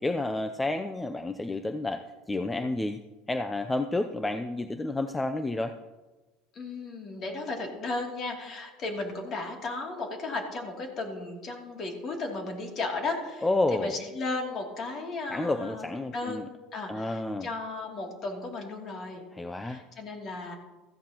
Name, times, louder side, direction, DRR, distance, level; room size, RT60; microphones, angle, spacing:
voice 1, 0.0-2.0 2.3-3.0 3.3-5.7 13.4-14.0 15.3-16.5 16.9-17.5 19.3-19.8, left 2 dB, 10° left, 8 dB, 0.5 m, -30 dB
voice 2, 6.5-15.8 16.1-16.5 16.7-19.2 19.6-20.5, left 3 dB, 40° left, 1 dB, 2.8 m, -35 dB
16.0 x 14.0 x 3.0 m, 1.2 s
cardioid pair, 140°, 0 cm